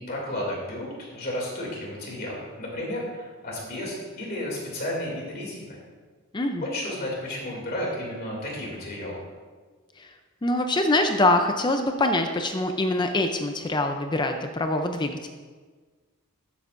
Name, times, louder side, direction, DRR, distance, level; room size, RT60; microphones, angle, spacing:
voice 1, 0.0-5.8 6.6-9.2, left 1 dB, 45° left, -3 dB, 2.6 m, -32 dB
voice 2, 6.3-6.7 10.0-10.1 10.4-15.3, left 2 dB, 20° left, 6 dB, 0.5 m, -24 dB
12.0 x 8.0 x 2.6 m, 1.4 s
head